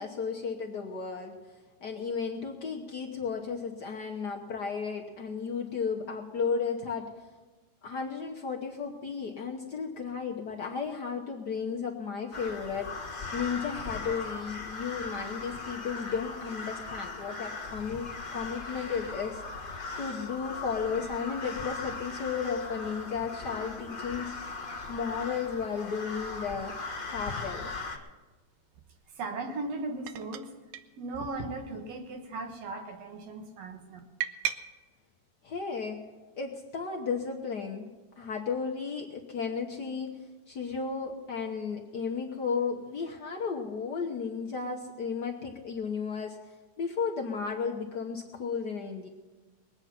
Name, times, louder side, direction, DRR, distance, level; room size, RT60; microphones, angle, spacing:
voice 1, 0.0-1.4 1.8-7.1 7.8-12.9 13.3-19.4 20.0-24.3 24.9-26.7 27.1-27.7 35.4-36.0 36.4-37.9 38.2-40.1 40.5-46.4 46.8-49.1, left 5 dB, 70° left, 0 dB, 0.9 m, -34 dB
sound 1, 12.3-28.0, left 3 dB, 45° left, 0.6 m, -39 dB
sound 2, 28.7-29.0 30.1-30.5 30.7-30.8 31.1-32.0 32.4-32.8 34.2-34.6, right 10 dB, 85° right, 2.1 m, -36 dB
voice 2, 29.1-30.5 31.0-34.0, right 2 dB, 60° right, 4 dB, 2.5 m, -37 dB
21.5 x 8.9 x 5.8 m, 1.3 s
omnidirectional pair, 3.4 m